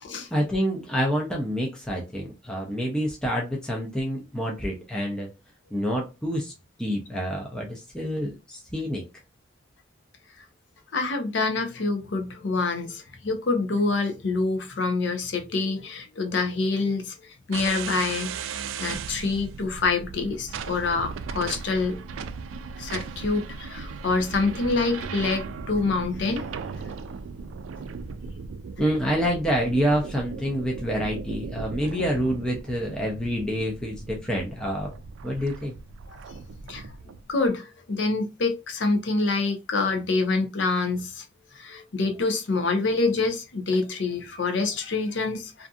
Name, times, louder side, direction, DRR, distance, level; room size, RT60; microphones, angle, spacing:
voice 1, 0.3-5.3 5.7-6.5 6.8-9.0 28.8-34.9 35.2-35.7, equal, 5° left, 0.5 m, -27 dB
voice 2, 10.9-18.4 18.8-22.0 22.8-26.4 36.1-36.2 36.7-36.8 37.3-41.2 41.5-45.7, left 3 dB, 65° left, 0.6 m, -26 dB
sound 1, 17.5-37.2, right 5 dB, 90° right, 0.3 m, -37 dB
2.6 x 2.5 x 2.3 m
head